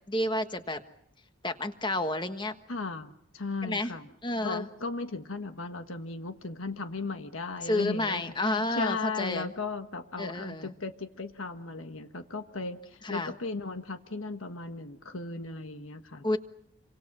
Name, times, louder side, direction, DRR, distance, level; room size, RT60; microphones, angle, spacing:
voice 1, 0.1-0.8 1.4-2.5 3.6-4.0 4.2-4.7 7.6-9.5 10.2-10.7 13.0-13.3 16.2-16.4, left 1 dB, 20° left, 8 dB, 1.4 m, -30 dB
voice 2, 2.7-4.1 4.4-16.4, left 3 dB, 75° left, 8 dB, 1.5 m, -36 dB
27.5 x 25.5 x 6.1 m, 0.78 s
head